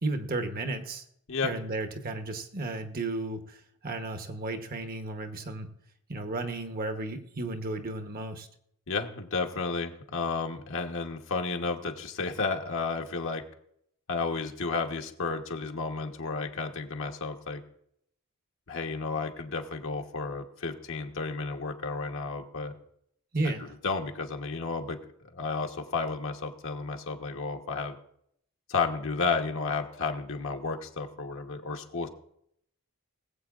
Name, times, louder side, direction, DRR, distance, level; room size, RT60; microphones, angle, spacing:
voice 1, 0.0-1.0 1.4-5.7 6.1-8.5 23.3-23.6, right 2 dB, 45° right, 7 dB, 1.0 m, -33 dB
voice 2, 8.9-13.4 14.1-17.6 18.7-22.7 23.4-23.5 23.8-25.0 25.3-28.0 28.7-32.1, left 4 dB, 65° left, 4 dB, 1.1 m, -32 dB
20.5 x 7.9 x 2.5 m, 0.71 s
head